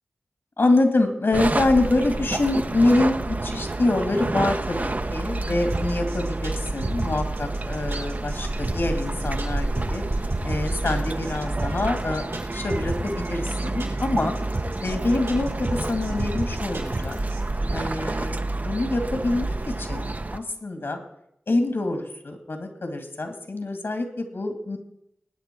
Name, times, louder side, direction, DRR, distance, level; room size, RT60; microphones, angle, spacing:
voice 1, 0.6-10.0 10.4-14.3 14.8-17.2 17.7-21.0 21.5-24.8, left 2 dB, 65° left, 5 dB, 2.4 m, -25 dB
sound 1, 1.3-20.4, right 2 dB, 40° right, 0.7 m, -28 dB
sound 2, 5.7-17.4, right 3 dB, 90° right, 4.2 m, -32 dB
21.5 x 9.4 x 4.7 m, 0.77 s
wide cardioid pair, 55°, 4 cm